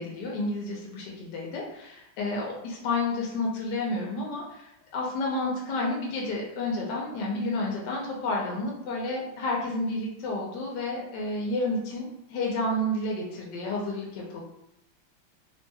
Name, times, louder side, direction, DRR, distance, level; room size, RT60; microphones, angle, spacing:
voice 1, 0.0-14.4, left 2 dB, 70° left, -2 dB, 1.2 m, -30 dB
3.2 x 2.8 x 2.2 m, 0.81 s
omnidirectional pair, 2.1 m